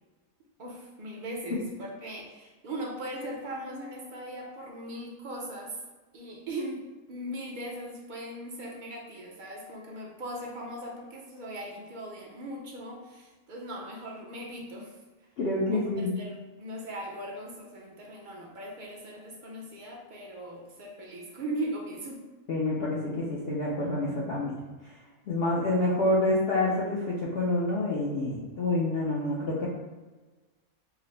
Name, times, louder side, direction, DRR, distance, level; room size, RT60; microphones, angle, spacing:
voice 1, 0.6-5.8 6.1-15.3 15.7-22.2, right 1 dB, 45° right, -1 dB, 0.6 m, -39 dB
voice 2, 15.4-16.2 22.5-24.5 25.3-29.7, left 2 dB, 55° left, -6 dB, 0.7 m, -27 dB
4.8 x 2.0 x 3.2 m, 1.2 s
omnidirectional pair, 1.5 m